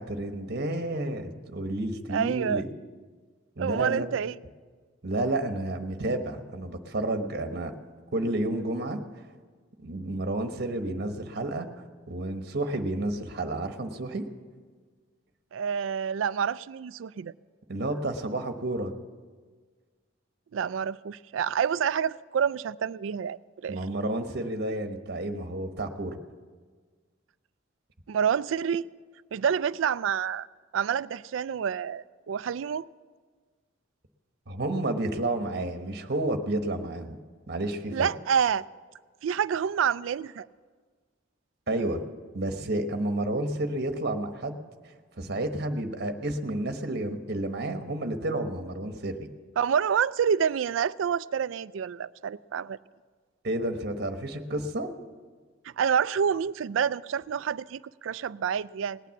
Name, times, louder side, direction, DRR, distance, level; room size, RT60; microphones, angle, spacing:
voice 1, 0.0-2.6 3.6-4.1 5.0-7.7 8.1-9.0 9.8-11.7 12.1-14.2 17.7-19.0 23.7-26.2 34.5-37.2 37.5-38.1 41.7-42.0 42.3-44.6 45.2-49.3 53.4-54.9, right 1 dB, 55° right, 1.2 m, -30 dB
voice 2, 2.1-2.6 3.6-4.3 15.5-17.3 20.5-23.8 28.1-28.9 29.3-30.5 30.7-32.9 37.9-38.7 39.2-40.5 49.6-52.8 55.6-59.0, right 7 dB, 80° right, 0.4 m, -28 dB
18.5 x 9.3 x 7.1 m
head